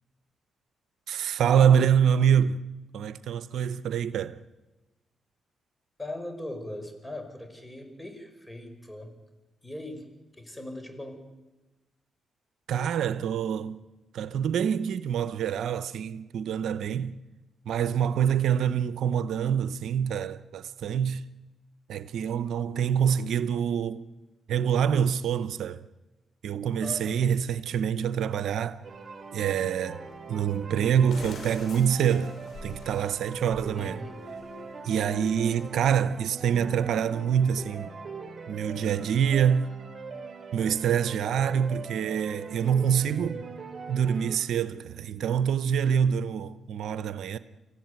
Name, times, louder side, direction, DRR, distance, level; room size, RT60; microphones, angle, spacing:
voice 1, 1.1-2.6 2.9-4.4 12.7-13.8 14.1-17.2 17.7-21.2 21.9-24.1 24.5-25.8 26.4-28.8 29.3-30.0 30.3-32.4 32.6-34.0 34.8-37.9 38.5-39.7 40.5-43.4 43.9-47.4, right 8 dB, 80° right, 0.7 m, -26 dB
voice 2, 6.0-9.2 9.6-11.2 26.8-27.3 33.7-34.3 43.0-43.4, left 1 dB, 15° left, 5.2 m, -40 dB
sound 1, 28.1-28.2 30.1-30.2 30.9-33.8 34.2-34.5 35.2-35.7, left 3 dB, 70° left, 5.2 m, -45 dB
sound 2, 28.8-44.4, right 4 dB, 55° right, 5.8 m, -41 dB
25.5 x 15.0 x 9.5 m
supercardioid pair, 60°, 0 cm